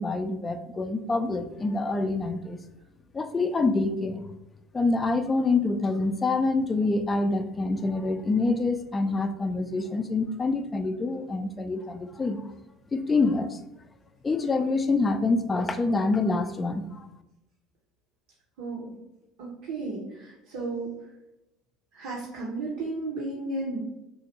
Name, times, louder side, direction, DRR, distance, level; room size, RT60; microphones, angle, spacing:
voice 1, 0.0-2.6 3.1-4.3 4.7-12.5 12.9-13.6 14.2-17.1, left 3 dB, 25° left, 9 dB, 0.3 m, -26 dB
voice 2, 18.6-18.9 19.4-20.9 21.9-23.8, right 3 dB, 65° right, -5 dB, 0.7 m, -33 dB
3.1 x 2.5 x 2.8 m, 0.95 s
hypercardioid pair, 65°, 0 cm